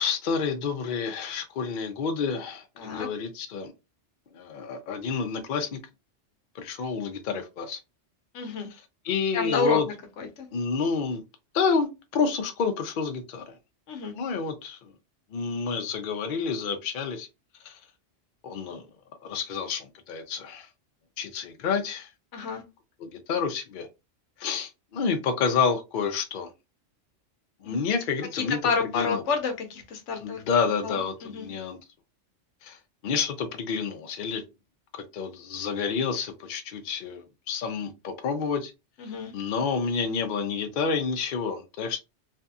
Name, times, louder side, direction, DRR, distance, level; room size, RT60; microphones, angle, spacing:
voice 1, 0.0-3.7 4.3-5.8 6.5-7.8 9.0-9.9 10.5-11.2 11.5-13.5 14.1-14.9 15.3-17.3 17.6-17.8 18.4-18.8 19.2-20.7 21.2-22.1 23.0-23.9 24.4-26.5 27.6-28.6 28.9-29.2 30.2-31.8 32.6-32.8 33.0-34.4 35.1-38.7 39.3-42.0, left 5 dB, 55° left, 0.6 m, -29 dB
voice 2, 2.8-3.1 8.3-8.7 9.3-10.5 13.9-14.1 22.3-22.6 27.6-27.8 28.3-30.4 30.8-31.5 39.0-39.3, left 4 dB, 80° left, 1.0 m, -29 dB
2.6 x 2.5 x 2.3 m
omnidirectional pair, 1.2 m